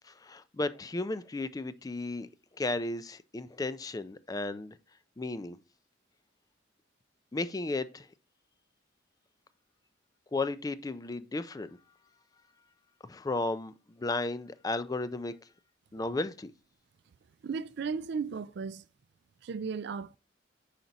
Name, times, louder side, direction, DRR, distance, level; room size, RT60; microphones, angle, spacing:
voice 1, 0.0-4.8 5.2-5.6 7.3-8.1 10.3-11.8 13.0-15.3 15.9-16.5, left 2 dB, 20° left, 0.4 m, -34 dB
voice 2, 17.4-18.8 19.4-20.2, right 5 dB, 60° right, 0.4 m, -35 dB
5.8 x 5.1 x 4.0 m
head